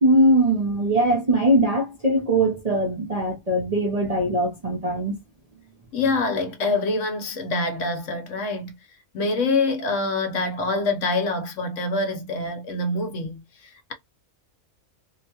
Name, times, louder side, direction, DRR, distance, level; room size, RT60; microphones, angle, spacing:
voice 1, 0.0-5.2, right 1 dB, 35° right, 0.6 m, -21 dB
voice 2, 5.9-8.8 9.1-13.9, left 3 dB, 65° left, 1.1 m, -25 dB
2.9 x 2.2 x 2.8 m
omnidirectional pair, 1.5 m